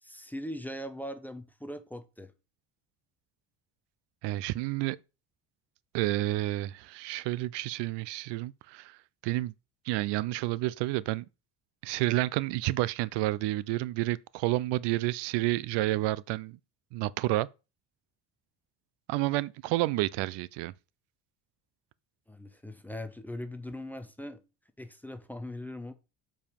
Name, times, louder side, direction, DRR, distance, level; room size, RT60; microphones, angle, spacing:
voice 1, 0.0-2.3 22.3-24.4 24.8-25.9, left 1 dB, 5° left, 0.6 m, -40 dB
voice 2, 4.2-5.0 5.9-9.5 9.9-11.2 11.8-16.6 16.9-17.5 19.1-20.7, right 17 dB, 75° right, 0.5 m, -30 dB
7.3 x 5.0 x 5.2 m
cardioid pair, 160°, 42 cm